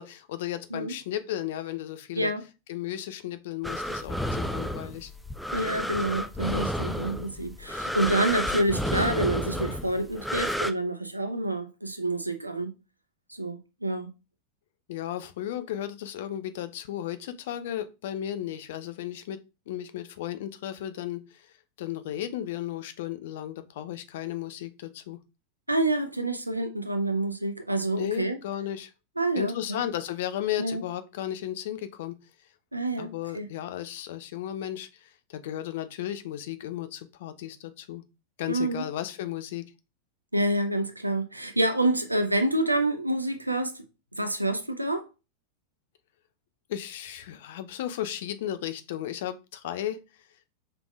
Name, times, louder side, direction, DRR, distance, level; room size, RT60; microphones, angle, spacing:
voice 1, 0.0-2.3 2.7-5.1 14.9-19.4 19.7-25.2 27.9-28.9 29.4-32.2 33.0-38.0 38.4-39.7 46.7-50.0, left 12 dB, 55° left, 0.5 m, -34 dB
sound 1, 3.6-10.7, equal, ahead, 0.3 m, -31 dB
voice 2, 5.5-12.8 13.3-14.1 25.7-28.4 29.2-29.8 30.6-30.8 32.7-33.5 38.5-38.8 40.3-43.8 44.1-45.1, right 1 dB, 85° right, 0.5 m, -28 dB
4.8 x 3.4 x 2.3 m
figure-of-eight pair, 90°, 0 cm